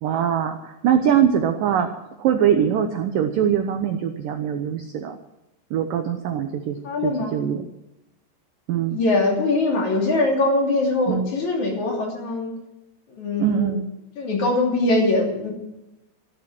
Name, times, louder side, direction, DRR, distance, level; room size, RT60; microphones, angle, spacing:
voice 1, 0.0-1.9 2.2-5.2 5.7-6.8 7.0-7.7 8.7-9.0 11.1-11.3 13.4-13.8, right 9 dB, 80° right, 7 dB, 2.0 m, -22 dB
voice 2, 6.8-7.4 8.9-12.5 13.1-13.7 14.2-15.5, left 2 dB, 45° left, 0 dB, 3.8 m, -22 dB
15.0 x 12.5 x 6.2 m, 0.93 s
omnidirectional pair, 5.3 m